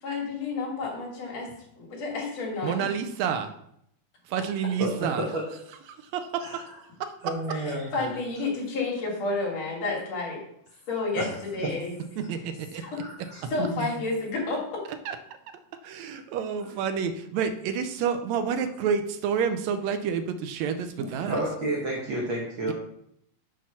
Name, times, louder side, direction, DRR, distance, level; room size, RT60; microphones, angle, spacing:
voice 1, 0.0-1.5 1.8-2.9 7.5-10.4 10.9-11.3 11.5-11.9 12.7-13.0 13.5-14.8, left 3 dB, 60° left, -2 dB, 2.8 m, -30 dB
voice 2, 2.6-3.5 4.3-5.2 6.0-6.6 7.0-7.1 12.2-12.8 14.9-15.2 15.8-21.4, right 7 dB, 75° right, 9 dB, 1.7 m, -29 dB
voice 3, 4.8-5.4 6.4-6.6 7.2-8.1 11.2-11.3 11.6-11.7 13.0-13.9 21.0-22.7, right 1 dB, 55° right, -3 dB, 1.4 m, -31 dB
6.0 x 4.7 x 5.6 m, 0.73 s
omnidirectional pair, 3.5 m